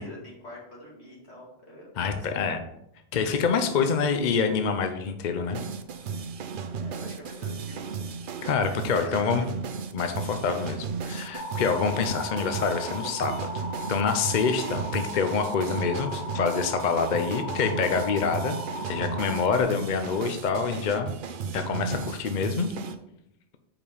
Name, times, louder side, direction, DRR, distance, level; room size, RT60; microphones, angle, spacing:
voice 1, 0.0-2.5 3.5-3.6 6.8-7.9 8.7-9.4, left 1 dB, 70° left, -5 dB, 2.5 m, -45 dB
voice 2, 2.0-2.6 3.1-5.6 8.4-9.4 9.9-18.6 18.9-21.1 21.5-22.7, left 5 dB, 50° left, 6 dB, 0.6 m, -26 dB
sound 1, 5.5-23.0, right 5 dB, 60° right, 0.7 m, -35 dB
sound 2, 11.3-19.6, left 1 dB, 30° left, 1.4 m, -37 dB
5.0 x 4.8 x 5.4 m, 0.79 s
omnidirectional pair, 1.1 m